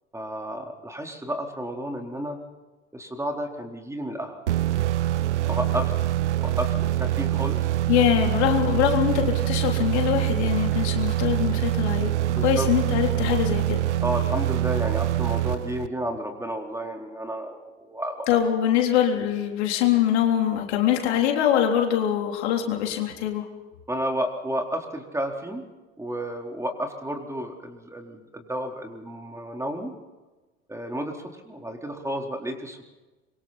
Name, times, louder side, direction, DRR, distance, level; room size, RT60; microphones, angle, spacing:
voice 1, 0.1-2.4 2.9-4.4 5.5-5.9 6.4-7.7 12.3-12.7 14.0-18.3 23.9-25.6 26.0-29.9 30.7-32.8, equal, 10° right, 2 dB, 4.1 m, -32 dB
sound 1, 4.5-16.2, right 14 dB, 80° right, 0.6 m, -25 dB
voice 2, 7.9-12.1 12.4-13.8 18.3-23.5, left 10 dB, 70° left, 2 dB, 3.7 m, -23 dB
26.0 x 24.0 x 4.3 m, 1.2 s
hypercardioid pair, 70°, 34 cm